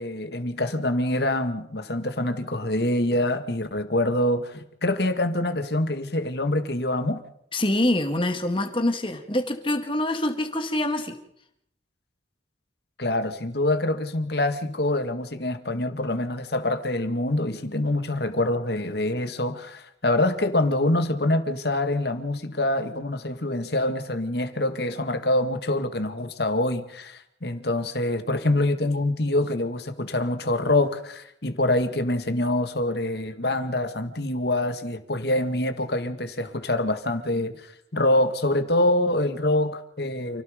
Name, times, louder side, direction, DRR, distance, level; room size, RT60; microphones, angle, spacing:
voice 1, 0.0-7.2 13.0-37.5 37.9-40.4, left 1 dB, 55° left, 8 dB, 2.0 m, -25 dB
voice 2, 7.5-11.2, left 1 dB, 25° left, 7 dB, 2.4 m, -25 dB
29.0 x 17.5 x 5.3 m, 0.72 s
head